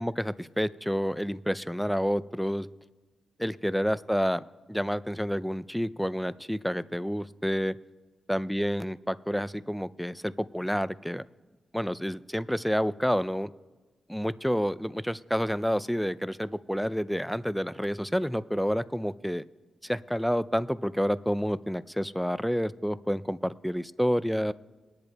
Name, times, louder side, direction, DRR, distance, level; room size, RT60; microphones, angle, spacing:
voice 1, 0.0-2.7 3.4-4.4 4.7-7.8 8.3-11.2 11.7-13.5 14.1-19.4 19.8-24.5, equal, ahead, 17 dB, 0.4 m, -29 dB
22.5 x 10.5 x 2.2 m, 1.3 s
cardioid pair, 60°, 0 cm